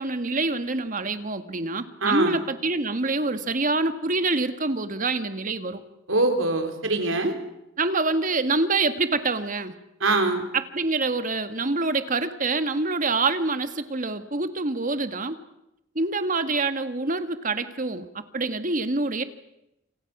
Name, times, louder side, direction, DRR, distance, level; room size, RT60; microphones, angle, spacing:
voice 1, 0.0-5.8 7.8-9.7 10.5-15.4 15.9-19.2, right 3 dB, 40° right, 10 dB, 1.5 m, -26 dB
voice 2, 2.0-2.4 6.1-7.3 10.0-10.4, right 2 dB, 90° right, 5 dB, 3.7 m, -23 dB
28.5 x 27.5 x 6.0 m, 0.88 s
head